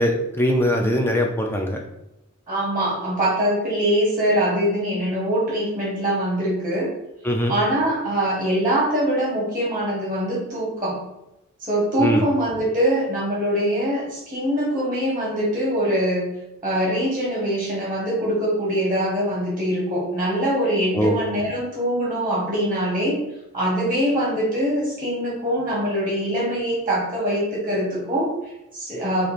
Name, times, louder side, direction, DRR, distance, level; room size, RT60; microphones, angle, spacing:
voice 1, 0.0-1.8 7.2-7.5 12.0-12.3 20.9-21.2, equal, 10° left, 2 dB, 0.4 m, -21 dB
voice 2, 2.5-6.9 7.5-11.0 11.6-16.3 16.6-23.2 23.5-29.3, equal, 15° right, -5 dB, 0.9 m, -23 dB
3.2 x 2.5 x 4.1 m, 0.90 s
head